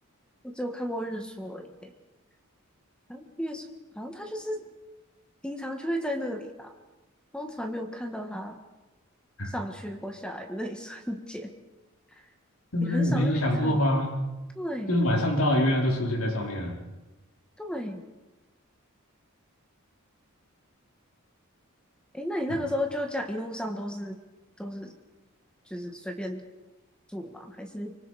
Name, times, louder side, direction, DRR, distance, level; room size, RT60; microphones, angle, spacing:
voice 1, 0.4-1.9 3.1-3.7 3.9-4.7 5.4-6.7 7.3-8.6 9.4-11.5 12.8-13.8 14.5-14.9 17.6-18.0 22.1-24.2 24.6-24.9 25.7-26.4 27.1-27.9, equal, 5° left, 4 dB, 1.7 m, -34 dB
voice 2, 12.7-14.2 14.9-16.8, left 1 dB, 85° left, 1 dB, 4.6 m, -25 dB
25.0 x 24.5 x 5.0 m, 1.1 s
head